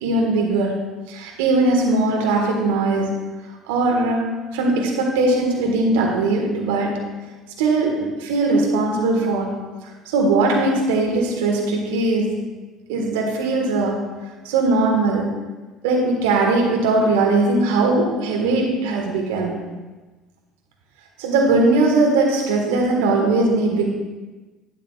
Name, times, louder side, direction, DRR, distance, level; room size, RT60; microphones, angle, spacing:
voice 1, 0.0-0.8 1.1-3.2 3.7-4.3 4.5-7.1 7.6-9.6 10.1-12.4 12.9-14.1 14.4-15.4 15.8-19.6 21.2-23.9, right 2 dB, 70° right, 1 dB, 1.5 m, -20 dB
11.5 x 8.3 x 2.4 m, 1.2 s
hypercardioid pair, 60°, 0 cm